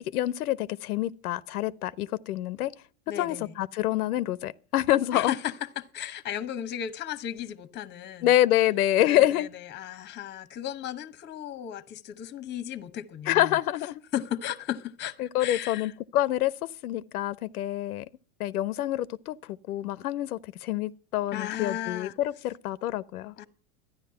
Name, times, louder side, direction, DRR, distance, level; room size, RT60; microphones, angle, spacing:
voice 1, 0.0-2.7 3.2-5.3 8.2-9.5 13.3-14.0 15.2-16.5 16.8-18.1 18.4-23.3, left 13 dB, 90° left, 0.7 m, -27 dB
voice 2, 3.1-3.5 5.1-8.3 9.0-13.6 14.1-15.9 21.3-22.1 23.4-23.5, left 10 dB, 25° left, 0.9 m, -35 dB
13.0 x 10.0 x 5.5 m
supercardioid pair, 125°, 43 cm